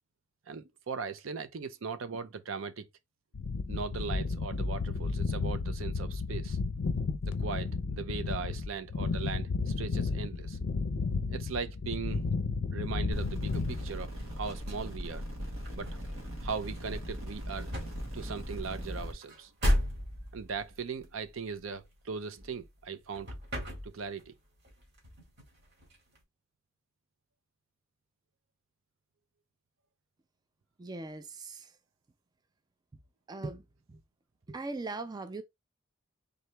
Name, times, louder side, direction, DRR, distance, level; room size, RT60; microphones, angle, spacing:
voice 1, 0.5-2.9 3.7-6.6 7.2-10.6 11.3-12.2 12.7-14.1 14.4-15.2 15.8-17.7 18.1-19.5 20.3-23.3 23.8-24.3, right 5 dB, 70° right, 0.5 m, -39 dB
sound 1, 3.3-14.5, left 4 dB, 75° left, 0.5 m, -33 dB
sound 2, 13.1-19.1, equal, 90° right, 1.4 m, -39 dB
sound 3, 13.5-22.8 23.1-24.4 24.6-26.2, equal, 55° right, 2.0 m, -36 dB
voice 2, 30.8-31.6 33.3-33.6 33.9-34.0 34.5-35.4, right 3 dB, 20° right, 0.4 m, -39 dB
3.8 x 2.9 x 3.3 m
head